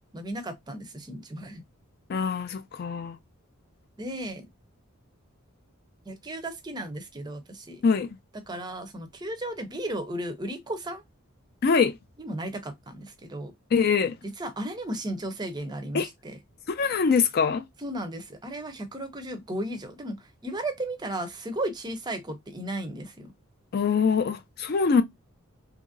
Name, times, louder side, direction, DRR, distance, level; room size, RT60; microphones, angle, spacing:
voice 1, 0.1-1.6 4.0-4.5 6.1-7.8 8.5-11.0 12.2-13.5 14.4-16.4 17.8-23.3, right 1 dB, 20° right, 0.5 m, -35 dB
voice 2, 2.1-3.2 7.8-8.1 11.6-12.0 13.7-14.1 15.9-16.1 16.7-17.6 23.7-25.0, left 5 dB, 45° left, 0.4 m, -23 dB
2.9 x 2.5 x 2.5 m
head